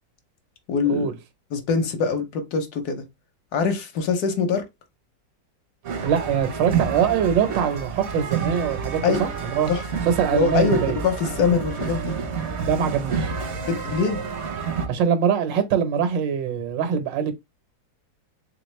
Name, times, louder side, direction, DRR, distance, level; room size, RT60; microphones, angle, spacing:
voice 1, 0.7-1.1 1.5-3.0 3.5-4.6 9.0-9.2 9.7-9.8 10.3-12.2 13.7-14.2, left 5 dB, 65° left, 1.2 m, -23 dB
sound 1, 5.8-14.9, right 6 dB, 55° right, 0.7 m, -29 dB
voice 2, 6.0-9.7 10.0-11.0 12.6-13.3 14.9-17.3, right 7 dB, 85° right, 1.5 m, -23 dB
3.5 x 3.3 x 3.1 m
omnidirectional pair, 1.9 m